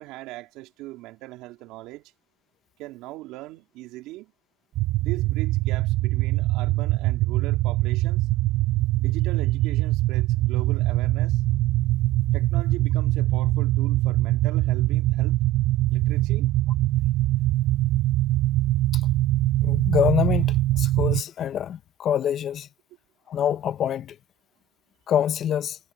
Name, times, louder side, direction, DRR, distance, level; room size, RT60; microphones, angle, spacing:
voice 1, 0.0-2.0 2.8-4.3 5.0-8.3 9.0-11.4 12.3-15.4 15.9-16.5, right 18 dB, 80° right, 3.7 m, -39 dB
sound 1, 4.8-21.2, right 16 dB, 65° right, 0.9 m, -23 dB
voice 2, 19.6-22.7 23.3-24.2 25.1-25.8, left 9 dB, 55° left, 1.1 m, -25 dB
cardioid pair, 105°, 0 cm